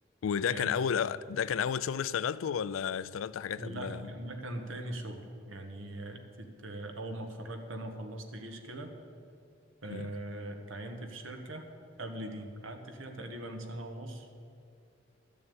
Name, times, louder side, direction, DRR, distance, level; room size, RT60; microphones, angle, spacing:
voice 1, 0.2-4.0 9.9-10.1, left 7 dB, 85° left, 0.4 m, -32 dB
voice 2, 3.6-8.9 9.8-11.6 12.0-14.3, right 1 dB, 80° right, 1.4 m, -41 dB
12.5 x 7.0 x 8.7 m
head